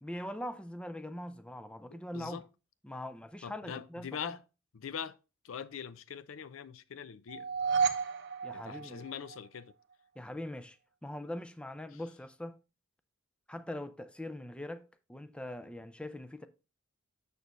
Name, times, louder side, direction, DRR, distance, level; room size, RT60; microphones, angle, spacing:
voice 1, 0.0-2.4 2.8-4.4 8.4-9.0 10.2-10.8 11.0-12.6 13.5-16.5, left 1 dB, 5° left, 0.4 m, -42 dB
voice 2, 1.9-2.5 3.4-4.4 4.7-5.1 5.4-7.5 8.5-9.7 11.9-12.0, left 7 dB, 80° left, 0.5 m, -42 dB
sound 1, 7.3-9.6, right 6 dB, 60° right, 0.8 m, -32 dB
6.8 x 6.5 x 3.1 m
head